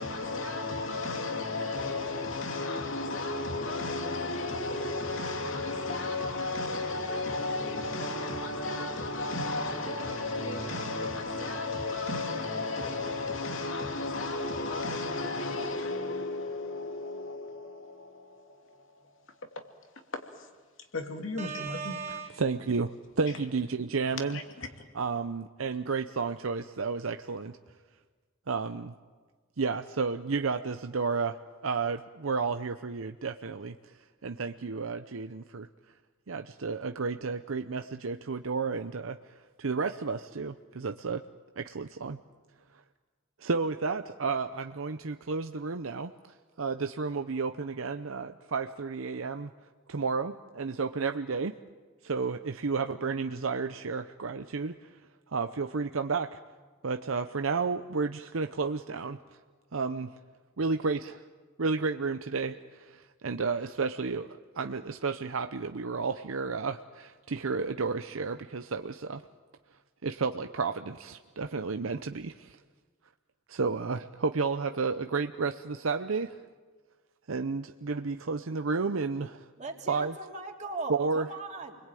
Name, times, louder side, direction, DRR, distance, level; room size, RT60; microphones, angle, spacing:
voice 1, 0.0-18.9 20.1-20.5 20.9-22.0 24.3-24.7, left 2 dB, 75° left, 2.8 m, -33 dB
voice 2, 21.4-22.4 79.6-81.8, right 4 dB, 35° right, 3.1 m, -38 dB
voice 3, 22.4-24.4 24.9-27.5 28.5-28.9 29.6-31.4 31.6-33.7 34.2-35.7 36.3-39.2 39.6-41.2 41.6-42.2 43.4-46.1 46.6-49.5 49.9-51.5 52.0-54.7 55.3-56.4 56.8-59.2 59.7-60.1 60.6-61.2 61.6-62.6 63.2-69.2 70.0-72.3 73.5-76.3 77.3-79.4 79.9-80.1 80.9-81.3, right 4 dB, 85° right, 0.7 m, -31 dB
29.0 x 21.5 x 9.2 m
head